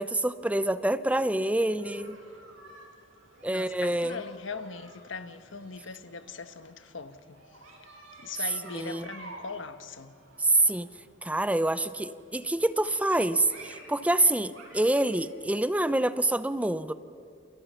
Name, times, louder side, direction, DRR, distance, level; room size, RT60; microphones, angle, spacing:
voice 1, 0.0-2.2 3.4-4.2 8.7-9.1 10.4-10.9 11.2-16.9, right 1 dB, 5° right, 0.6 m, -26 dB
sound 1, 1.6-15.3, right 2 dB, 85° right, 7.4 m, -52 dB
voice 2, 3.5-7.4 8.2-10.1, left 4 dB, 80° left, 1.3 m, -40 dB
29.0 x 28.5 x 5.7 m
head